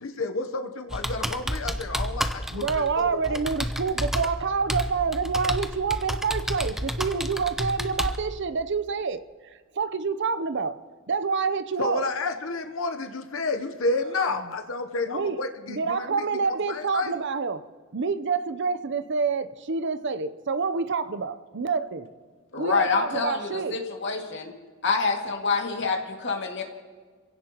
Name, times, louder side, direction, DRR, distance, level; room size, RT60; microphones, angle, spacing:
voice 1, 0.0-3.4 11.8-16.1 16.7-17.1, left 3 dB, 75° left, 6 dB, 0.9 m, -30 dB
Computer keyboard, 0.9-8.2, equal, ahead, 0.7 m, -31 dB
voice 2, 2.5-9.2 9.8-10.8 11.1-12.1 14.4-14.5 15.1-15.4 15.7-17.6 17.9-22.1 22.6-23.8, right 5 dB, 60° right, 11 dB, 0.7 m, -27 dB
voice 3, 22.5-24.5 24.8-26.6, left 4 dB, 60° left, 1 dB, 2.2 m, -26 dB
28.5 x 16.5 x 3.0 m, 1.5 s
head